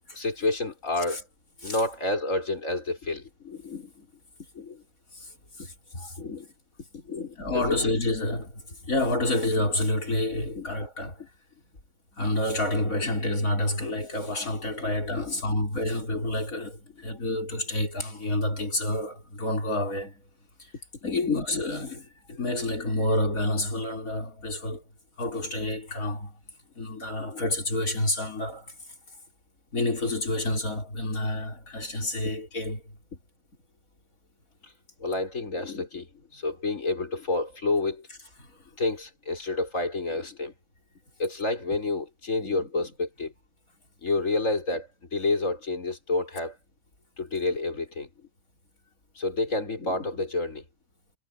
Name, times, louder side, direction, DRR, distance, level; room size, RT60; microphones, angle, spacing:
voice 1, 0.1-1.3 1.6-4.1 4.6-4.8 5.6-5.7 6.2-6.5 6.9-7.8 10.4-10.7 14.8-15.4 21.2-21.4 27.2-27.5 34.6-34.7 35.0-38.1 38.8-40.5 41.2-43.3 44.0-46.6 47.2-48.1 49.2-50.6, left 2 dB, 70° left, 5.1 m, -29 dB
voice 2, 5.6-6.2 7.4-11.2 12.1-20.2 21.0-24.8 25.2-26.4 26.8-28.7 29.7-32.8 38.4-38.5, left 1 dB, 85° left, 5.5 m, -29 dB
omnidirectional pair, 1.4 m